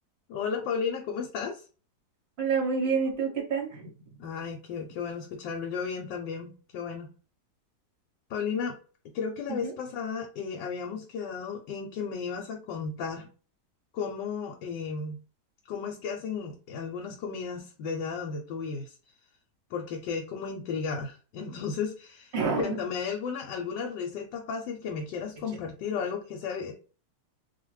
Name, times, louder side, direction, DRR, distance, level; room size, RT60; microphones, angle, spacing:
voice 1, 0.3-1.6 4.2-7.1 8.3-8.8 9.1-13.3 13.9-15.2 15.7-19.0 19.7-26.7, left 6 dB, 85° left, 2 dB, 1.3 m, -34 dB
voice 2, 2.4-3.9 9.5-9.8 22.3-22.8, right 5 dB, 50° right, 0 dB, 0.9 m, -28 dB
2.6 x 2.4 x 3.1 m, 0.37 s
omnidirectional pair, 1.9 m